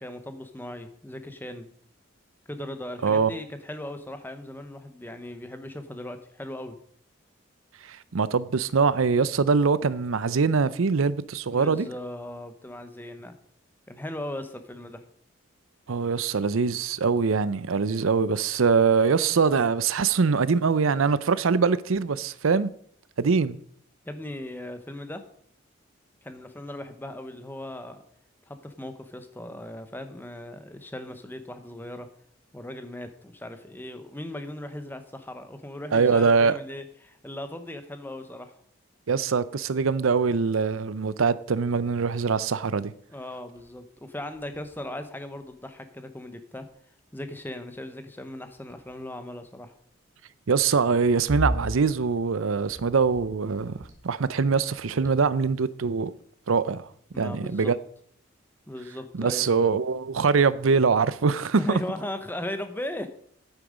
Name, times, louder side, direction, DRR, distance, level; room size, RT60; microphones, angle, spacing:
voice 1, 0.0-1.7 2.5-6.8 11.5-13.3 13.9-15.0 24.1-25.2 26.2-28.0 28.5-32.1 32.5-38.5 43.1-46.7 47.1-49.7 57.1-57.7 58.7-59.4 61.6-63.1, left 1 dB, 10° left, 0.9 m, -38 dB
voice 2, 3.0-3.3 7.9-11.9 15.9-22.7 23.2-23.6 35.9-36.6 39.1-42.9 50.5-53.8 54.0-56.1 56.5-56.8 57.2-57.7 59.1-61.8, right 5 dB, 80° right, 0.6 m, -23 dB
sound 1, 43.5-43.8 44.1-45.8 46.6-47.0 47.3-47.6 48.3-49.3 50.7-54.3 54.6-55.6, equal, 15° right, 1.9 m, -37 dB
10.0 x 9.1 x 5.1 m
head